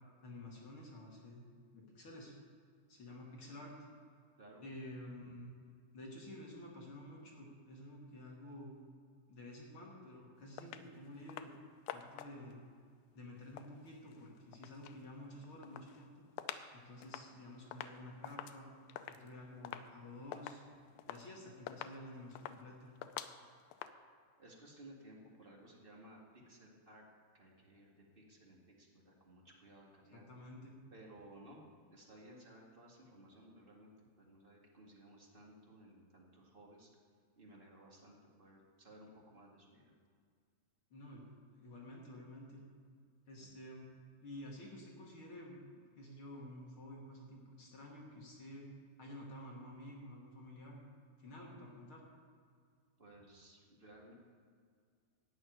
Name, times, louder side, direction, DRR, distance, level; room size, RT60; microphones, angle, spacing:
voice 1, 0.2-1.4 1.7-2.3 2.9-3.8 4.6-5.5 5.9-8.7 9.3-11.5 11.9-12.6 13.1-16.1 16.7-18.7 19.1-20.6 21.1-22.9 30.1-30.7 40.9-41.2 41.5-42.6 43.3-43.9 44.2-48.7 49.0-50.8 51.2-52.0, left 1 dB, 45° left, -2 dB, 2.2 m, -51 dB
sound 1, 10.6-10.9 11.3-11.6 11.9-12.5 13.4-15.0 15.4-16.7 17.0-23.9, left 11 dB, 85° left, 2.4 m, -48 dB
voice 2, 24.4-27.0 27.3-30.2 30.9-31.7 31.9-36.9 37.3-39.9 43.4-43.5 53.0-54.1, right 1 dB, 25° right, -2 dB, 1.2 m, -58 dB
13.0 x 6.8 x 9.2 m, 2.1 s
omnidirectional pair, 4.1 m